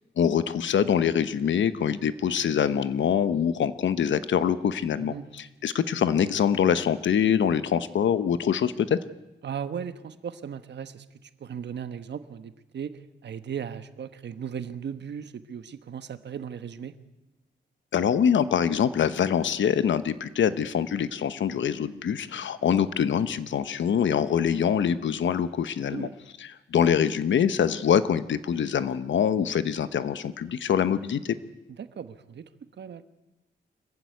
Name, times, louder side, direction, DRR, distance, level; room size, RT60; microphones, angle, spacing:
voice 1, 0.2-9.0 17.9-26.1 26.4-31.3, left 8 dB, 70° left, 13 dB, 1.0 m, -24 dB
voice 2, 9.4-11.0 11.4-16.9 25.9-26.1 31.8-32.5 32.8-33.0, right 7 dB, 60° right, 11 dB, 1.3 m, -37 dB
25.0 x 15.0 x 9.4 m, 1.0 s
wide cardioid pair, 145°, 20 cm